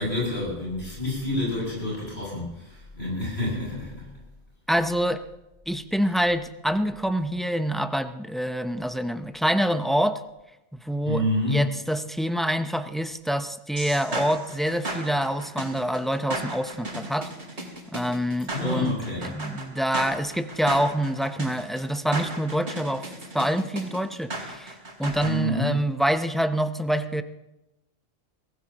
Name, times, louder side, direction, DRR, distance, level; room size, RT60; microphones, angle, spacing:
voice 1, 0.0-4.1 11.1-11.7 18.5-19.2 25.2-25.8, left 1 dB, 65° left, -5 dB, 7.1 m, -28 dB
voice 2, 4.7-5.3 5.7-10.2 10.8-17.3 17.6-18.9 19.2-27.2, equal, ahead, 9 dB, 0.3 m, -26 dB
sound 1, 13.8-25.3, right 2 dB, 75° right, 3.6 m, -35 dB
23.0 x 15.5 x 2.9 m, 0.96 s
omnidirectional pair, 1.1 m